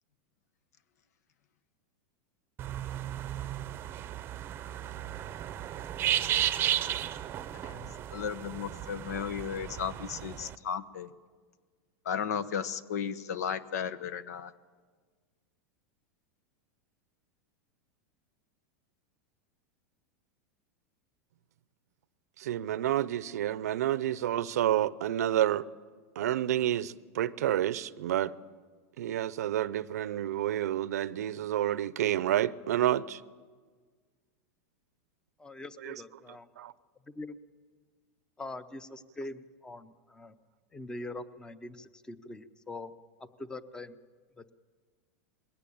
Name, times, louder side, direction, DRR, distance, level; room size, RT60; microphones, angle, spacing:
sound 1, 2.6-10.5, right 12 dB, 25° right, 0.7 m, -34 dB
voice 1, 7.6-11.1 12.0-14.5, left 7 dB, 85° left, 1.1 m, -35 dB
voice 2, 22.4-25.6 26.2-28.3 29.0-33.2 35.8-36.0 36.6-36.7, right 12 dB, 90° right, 0.7 m, -29 dB
voice 3, 35.4-36.5 37.1-37.4 38.4-40.3 40.7-42.9 43.4-44.0 44.4-44.5, left 2 dB, 10° left, 0.8 m, -43 dB
21.0 x 17.0 x 8.6 m
supercardioid pair, 145°, 8 cm